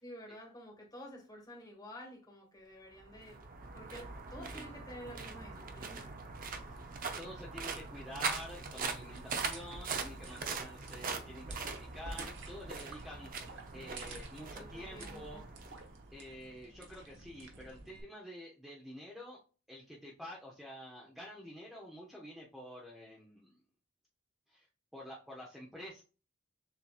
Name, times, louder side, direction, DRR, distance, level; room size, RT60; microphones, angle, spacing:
voice 1, 0.0-3.4 3.7-6.1 14.5-15.4, equal, 20° left, 0 dB, 1.6 m, -50 dB
sound 1, 2.9-16.3, right 4 dB, 45° right, 0.6 m, -42 dB
voice 2, 6.7-15.8 16.1-19.4 19.7-23.6 24.5-24.7 24.9-26.0, left 1 dB, ahead, -3 dB, 0.7 m, -49 dB
sound 2, 8.2-18.0, right 3 dB, 65° right, 1.1 m, -51 dB
6.8 x 2.9 x 2.3 m, 0.36 s
head